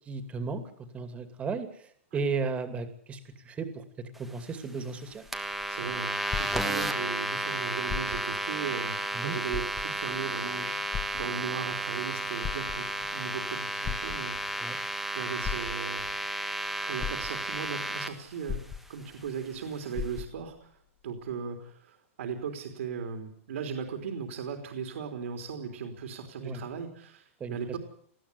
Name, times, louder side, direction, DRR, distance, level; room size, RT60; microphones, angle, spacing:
voice 1, 0.1-3.2 3.4-5.2 9.1-9.4 14.6-14.8 26.4-26.6 27.4-27.8, right 4 dB, 15° right, 9 dB, 2.5 m, -35 dB
sound 1, 5.1-7.2 7.8-8.5 8.9-9.0 9.5-10.2 10.9-11.7 12.3-13.1 13.8-14.6 15.4-16.1 16.7-16.8 17.0-17.7 18.5-19.3 19.5-19.6 19.9-20.6 21.3-21.4, left 9 dB, 20° left, 1.4 m, -37 dB
sound 2, 5.3-18.1, right 1 dB, ahead, 1.5 m, -33 dB
voice 2, 5.7-10.8 11.1-16.0 16.8-18.6 18.9-20.8 21.0-27.8, right 6 dB, 75° right, 4 dB, 3.6 m, -37 dB
19.5 x 14.5 x 9.9 m, 0.63 s
hypercardioid pair, 150°, 7 cm